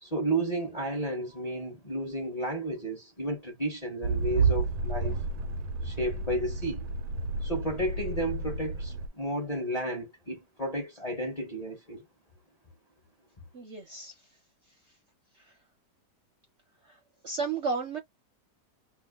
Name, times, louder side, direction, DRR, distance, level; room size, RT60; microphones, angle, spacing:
voice 1, 0.0-5.2 5.8-6.9 7.4-12.0, right 1 dB, 30° left, 0.9 m, -32 dB
sound 1, 4.0-9.1, right 4 dB, 75° right, 1.1 m, -31 dB
voice 2, 13.5-14.1 17.2-18.0, right 4 dB, 55° right, 0.8 m, -32 dB
2.8 x 2.2 x 3.6 m
omnidirectional pair, 1.9 m